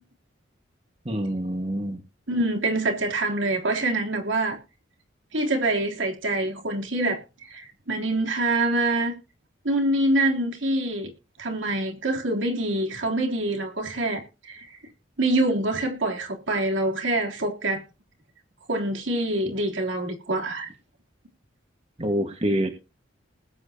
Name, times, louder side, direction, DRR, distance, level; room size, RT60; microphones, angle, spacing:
voice 1, 1.0-2.0 22.0-22.7, right 1 dB, 30° right, 1.5 m, -26 dB
voice 2, 2.3-4.6 5.3-7.2 7.5-9.1 9.6-11.1 11.4-14.7 15.2-17.8 18.7-20.7, right 2 dB, 80° right, 3.2 m, -25 dB
20.0 x 9.0 x 2.8 m
head